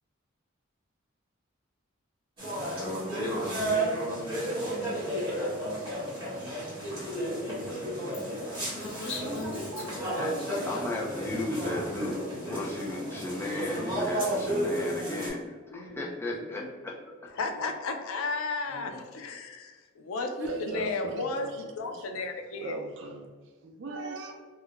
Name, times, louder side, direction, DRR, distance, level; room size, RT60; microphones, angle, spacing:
sound 1, 2.4-15.3, right 1 dB, 25° right, 1.1 m, -32 dB
voice 1, 8.8-10.6 15.7-16.0 16.3-16.7 17.5-17.7 18.6-19.1, left 2 dB, 65° left, -2 dB, 0.8 m, -41 dB
voice 2, 10.2-12.2 12.4-16.9, left 2 dB, 10° left, -2 dB, 0.3 m, -35 dB
voice 3, 17.4-19.7 20.0-21.5 21.8-22.7, left 3 dB, 90° left, 5 dB, 0.4 m, -33 dB
voice 4, 20.3-22.1 22.6-23.3 23.6-24.3, right 2 dB, 60° right, 3 dB, 0.4 m, -39 dB
2.3 x 2.1 x 3.8 m, 1.4 s
head